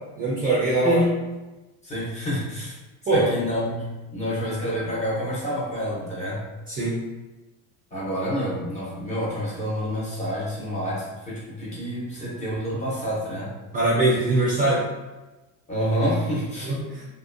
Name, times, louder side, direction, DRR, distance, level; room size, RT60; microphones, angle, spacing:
voice 1, 0.2-1.0 3.1-3.3 6.7-7.0 13.7-14.8 16.6-17.0, right 2 dB, 25° right, -7 dB, 0.5 m, -22 dB
voice 2, 0.8-1.2 1.8-2.8 3.1-3.8 4.1-6.4 7.9-13.6 15.7-16.8, equal, 20° left, -7 dB, 0.7 m, -28 dB
2.5 x 2.2 x 2.5 m, 1.1 s
cardioid pair, 150°, 37 cm